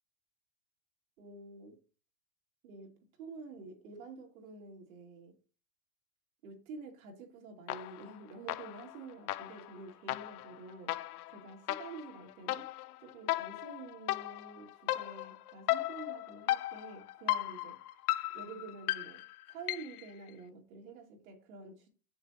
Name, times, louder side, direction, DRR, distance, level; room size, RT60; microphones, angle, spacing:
voice 1, 1.2-1.8 2.6-5.3 6.4-11.0 11.3-12.7 13.0-17.8 18.3-19.2 19.5-21.9, right 4 dB, 65° right, 2.6 m, -49 dB
sound 1, 7.7-8.2 8.5-20.1, left 16 dB, 80° left, 0.6 m, -36 dB
7.7 x 6.6 x 2.9 m
supercardioid pair, 170°, 45 cm